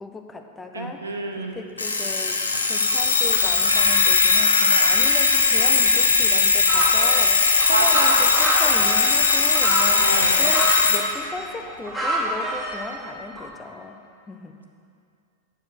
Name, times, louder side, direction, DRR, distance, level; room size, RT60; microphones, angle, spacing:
voice 1, 0.0-1.0 1.4-2.4 2.7-7.4 7.7-14.0 14.3-14.6, left 3 dB, 15° left, 4 dB, 0.6 m, -36 dB
voice 2, 0.7-1.6 7.7-8.2 10.0-10.4, right 3 dB, 75° right, 3 dB, 0.7 m, -27 dB
Alarm, 1.8-11.0, left 4 dB, 75° left, 0.6 m, -19 dB
sound 1, 6.7-10.8 11.4-13.0 13.4-13.5, right 1 dB, 5° right, 1.8 m, -27 dB
8.2 x 4.8 x 6.0 m, 2.5 s
figure-of-eight pair, 90°, 0 cm